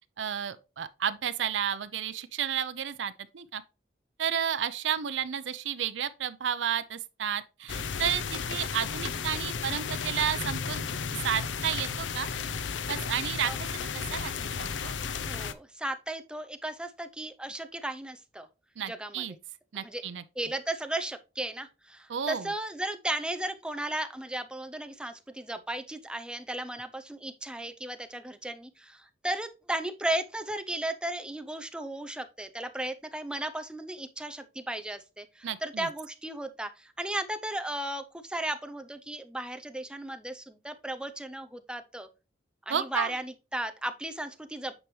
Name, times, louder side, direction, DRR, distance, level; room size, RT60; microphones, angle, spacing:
voice 1, 0.2-3.6 4.2-10.9 11.2-12.3 12.9-13.5 14.1-14.9 18.8-19.3 19.7-20.2 22.1-22.5 35.4-35.9 42.7-43.1, right 8 dB, 80° right, 0.5 m, -32 dB
sound 1, 7.7-15.5, left 6 dB, 90° left, 0.6 m, -34 dB
voice 2, 15.3-18.5 18.8-19.2 19.7-20.0 20.4-42.1 42.7-44.8, right 1 dB, 5° right, 0.6 m, -35 dB
8.8 x 4.7 x 3.1 m
head